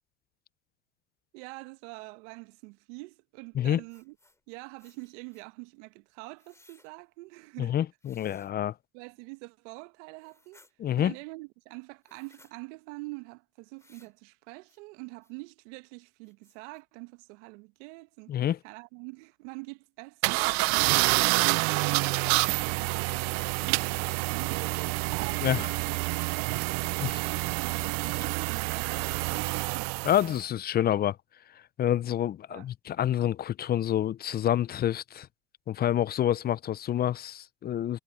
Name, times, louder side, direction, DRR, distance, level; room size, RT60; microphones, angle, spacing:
voice 1, 1.3-4.1 4.5-7.7 8.9-10.6 11.0-18.3 18.6-20.9 21.8-29.9 32.5-32.7, right 27 dB, 65° right, 1.3 m, -45 dB
sound 1, 3.9-4.4 4.8-5.5 6.4-6.9 8.0-8.5 10.2-10.7 12.0-12.5 13.8-14.2 14.7-14.8 15.2-15.3 15.8-15.9 16.2-16.8, left 2 dB, 5° left, 3.6 m, -62 dB
voice 2, 7.6-8.7 10.8-11.1 18.3-18.6 25.4-25.7 27.0-27.3 30.0-31.2 31.8-35.3 35.7-38.0, left 11 dB, 25° left, 0.6 m, -28 dB
sound 2, 20.2-30.4, right 28 dB, 45° right, 0.4 m, -28 dB
hypercardioid pair, 105°, 39 cm